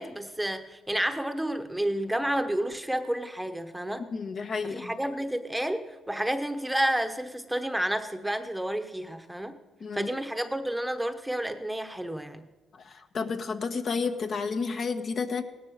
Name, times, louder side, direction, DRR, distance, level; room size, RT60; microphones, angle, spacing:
voice 1, 0.0-4.0 4.6-9.6 9.9-12.5, right 1 dB, 5° right, 8 dB, 1.1 m, -30 dB
voice 2, 4.1-5.0 9.8-10.1 12.7-15.4, left 5 dB, 55° left, 6 dB, 1.3 m, -31 dB
17.0 x 12.5 x 6.6 m, 1.2 s
cardioid pair, 90°, 0 cm